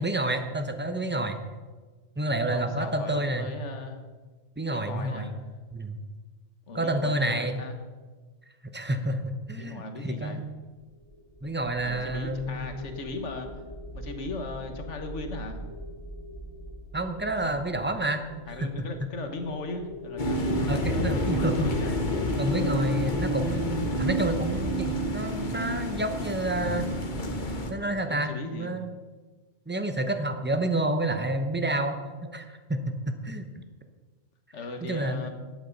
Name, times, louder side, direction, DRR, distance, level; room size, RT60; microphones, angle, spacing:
voice 1, 0.0-1.4 2.2-3.5 4.6-5.3 5.7-6.0 6.7-7.6 8.7-10.5 11.4-12.7 16.9-18.2 18.6-18.9 20.7-21.7 22.4-26.9 27.7-28.9 29.7-32.0 32.3-33.6 34.8-35.3, right 1 dB, 10° right, 7 dB, 0.7 m, -29 dB
voice 2, 2.5-4.0 4.7-5.3 6.7-7.8 9.5-10.4 11.8-13.5 13.9-15.6 17.4-17.6 18.5-20.5 21.2-22.0 28.0-28.7 34.5-35.3, left 2 dB, 80° left, 6 dB, 1.6 m, -38 dB
sound 1, 10.7-25.8, left 1 dB, 25° left, 2.3 m, -43 dB
sound 2, 20.2-27.7, equal, 45° left, 1.2 m, -28 dB
11.5 x 8.5 x 5.3 m, 1.4 s
omnidirectional pair, 1.2 m